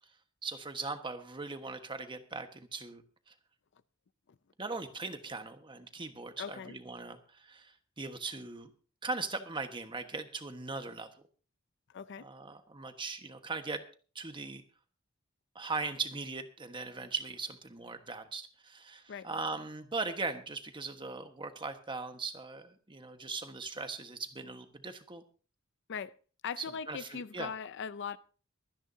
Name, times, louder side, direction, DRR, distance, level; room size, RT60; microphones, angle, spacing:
voice 1, 0.4-3.3 4.6-8.7 9.0-11.1 12.2-13.8 14.1-14.6 15.5-25.2 26.6-27.5, right 3 dB, 25° right, 1.3 m, -39 dB
voice 2, 6.4-6.8 11.9-12.3 19.1-19.3 25.9-26.2 26.4-28.2, left 6 dB, 60° left, 0.5 m, -40 dB
23.5 x 10.0 x 2.7 m
head